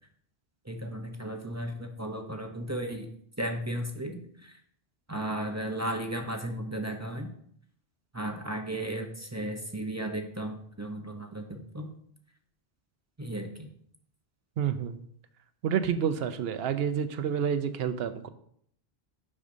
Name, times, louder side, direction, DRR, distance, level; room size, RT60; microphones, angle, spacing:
voice 1, 0.6-3.1 3.4-4.6 5.1-7.3 8.1-11.9 13.2-13.7, right 1 dB, 20° right, 4 dB, 0.5 m, -35 dB
voice 2, 14.6-15.0 15.6-18.3, right 8 dB, 75° right, 11 dB, 0.8 m, -29 dB
8.6 x 6.3 x 2.6 m, 0.66 s
omnidirectional pair, 1.0 m